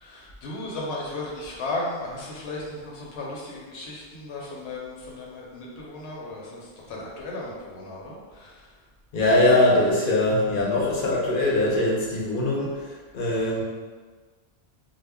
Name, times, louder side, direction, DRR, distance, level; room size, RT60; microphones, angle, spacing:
voice 1, 0.0-8.5, left 2 dB, 80° left, -4 dB, 0.9 m, -35 dB
voice 2, 9.1-13.6, left 2 dB, 60° left, -4 dB, 0.7 m, -22 dB
2.1 x 2.0 x 3.4 m, 1.4 s
omnidirectional pair, 1.1 m